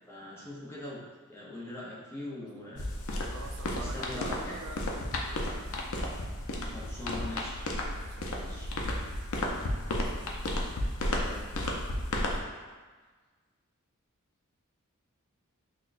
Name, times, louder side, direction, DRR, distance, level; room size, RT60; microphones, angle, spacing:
voice 1, 0.1-1.0 1.3-2.9 3.7-4.6 6.6-7.6 8.3-8.7 11.0-11.4, left 1 dB, 10° left, -5 dB, 0.6 m, -42 dB
sound 1, 2.8-12.4, left 1 dB, 75° left, 0.5 m, -33 dB
voice 2, 3.3-5.5 7.9-9.1 10.0-10.4, right 3 dB, 85° right, 3 dB, 0.4 m, -48 dB
6.0 x 2.2 x 2.5 m, 1.4 s
head